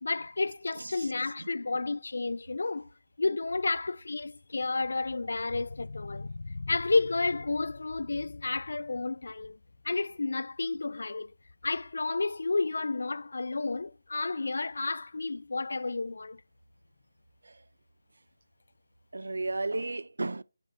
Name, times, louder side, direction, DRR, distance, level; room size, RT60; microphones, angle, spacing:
voice 1, 0.0-2.9 3.2-9.6 9.8-11.3 11.6-16.4, left 3 dB, 60° left, 0.3 m, -31 dB
voice 2, 0.8-1.1 1.4-1.8 17.4-17.6 19.1-20.4, right 2 dB, 65° right, 0.4 m, -35 dB
5.1 x 5.1 x 4.3 m
figure-of-eight pair, 155°, 0 cm